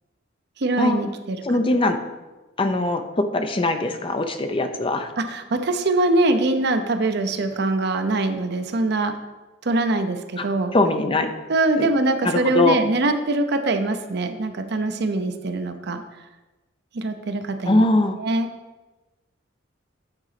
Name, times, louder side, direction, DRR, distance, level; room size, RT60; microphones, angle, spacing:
voice 1, 0.6-1.4 5.2-9.1 9.6-10.7 11.5-16.0 16.9-17.8 18.2-18.5, right 2 dB, 55° right, 7 dB, 0.7 m, -23 dB
voice 2, 1.4-2.0 2.6-5.1 10.4-10.5 10.7-11.3 11.8-11.9 12.2-12.8 17.7-18.2, left 2 dB, 25° left, 7 dB, 0.6 m, -21 dB
9.0 x 4.0 x 5.8 m, 1.1 s
head